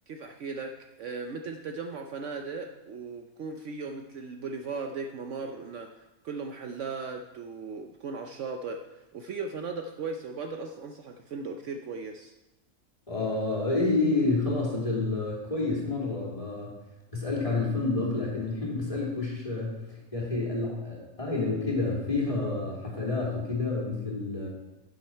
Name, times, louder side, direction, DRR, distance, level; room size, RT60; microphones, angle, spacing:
voice 1, 0.1-8.8 9.1-12.3, right 4 dB, 65° right, 4 dB, 0.9 m, -37 dB
voice 2, 13.1-16.7 17.1-19.8 20.1-24.5, left 3 dB, 25° left, -4 dB, 2.7 m, -29 dB
11.0 x 7.3 x 4.4 m, 0.98 s
omnidirectional pair, 1.5 m